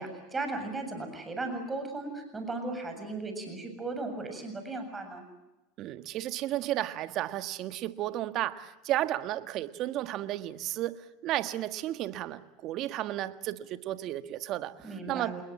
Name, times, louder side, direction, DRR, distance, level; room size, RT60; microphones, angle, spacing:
voice 1, 0.0-5.2 14.8-15.4, right 2 dB, 15° right, 6 dB, 7.2 m, -36 dB
voice 2, 5.8-15.4, right 14 dB, 50° right, 11 dB, 1.6 m, -33 dB
28.0 x 21.0 x 7.4 m, 0.99 s
hypercardioid pair, 105°, 0 cm